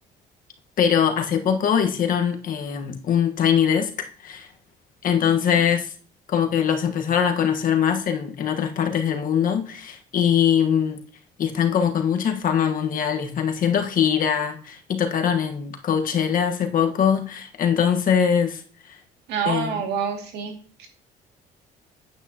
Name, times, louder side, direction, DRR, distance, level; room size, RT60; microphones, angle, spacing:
voice 1, 0.8-4.5 5.0-5.9 6.3-11.0 11.4-18.6 19.4-19.8, left 8 dB, 55° left, 1.4 m, -22 dB
voice 2, 19.3-20.5 20.8-20.9, right 7 dB, 80° right, 2.4 m, -27 dB
9.5 x 8.7 x 2.9 m
cardioid pair, 110°, 17 cm